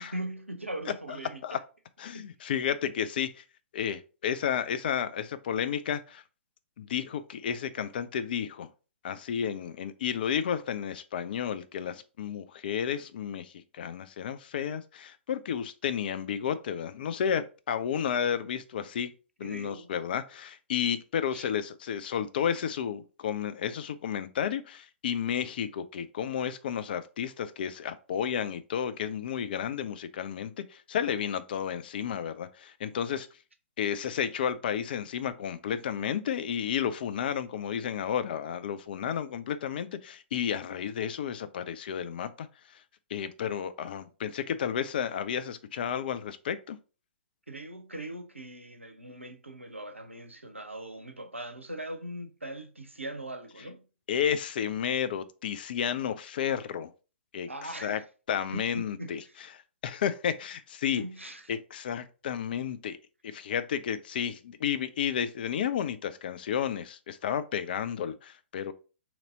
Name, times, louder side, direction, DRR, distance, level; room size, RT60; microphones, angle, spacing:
voice 1, 0.0-1.6 2.1-2.3 19.4-19.9 21.3-21.5 47.5-53.9 57.5-58.0 58.5-59.3 61.0-61.5, right 1 dB, 85° right, 0.6 m, -40 dB
voice 2, 2.0-3.4 3.7-6.2 6.8-8.7 9.0-19.1 19.4-33.3 33.8-42.8 43.1-46.8 54.1-56.9 57.3-58.0 58.3-59.2 59.5-61.0 61.5-63.0 63.2-68.7, left 8 dB, 50° left, 0.4 m, -32 dB
2.9 x 2.6 x 4.0 m
figure-of-eight pair, 115°, 7 cm